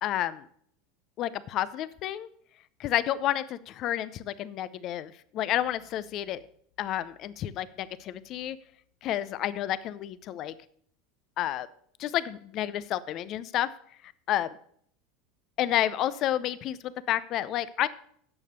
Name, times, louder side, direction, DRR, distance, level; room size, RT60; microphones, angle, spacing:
voice 1, 0.0-0.5 1.2-2.3 2.8-6.4 6.8-8.6 9.0-10.5 11.4-11.7 12.0-13.7 14.3-14.6 15.6-17.9, left 12 dB, 45° left, 16 dB, 0.6 m, -30 dB
9.7 x 6.8 x 6.7 m, 0.63 s
supercardioid pair, 115°, 0 cm